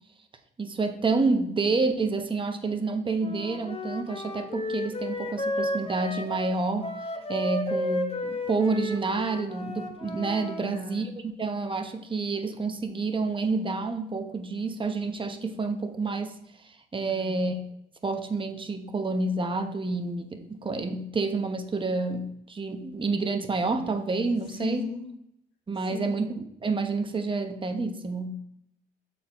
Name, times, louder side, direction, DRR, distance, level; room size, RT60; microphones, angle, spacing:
voice 1, 0.6-6.9 7.3-16.3 16.9-17.6 18.0-24.9 25.7-28.3, right 3 dB, 25° right, 6 dB, 1.0 m, -29 dB
Wind instrument woodwind instrument, 3.2-10.6, left 1 dB, 30° left, 1.1 m, -33 dB
voice 2, 10.6-11.1 17.0-17.3 24.5-25.2 25.9-26.3, left 5 dB, 90° left, 3 dB, 1.3 m, -37 dB
7.1 x 4.5 x 4.6 m, 0.76 s
supercardioid pair, 75°, 19 cm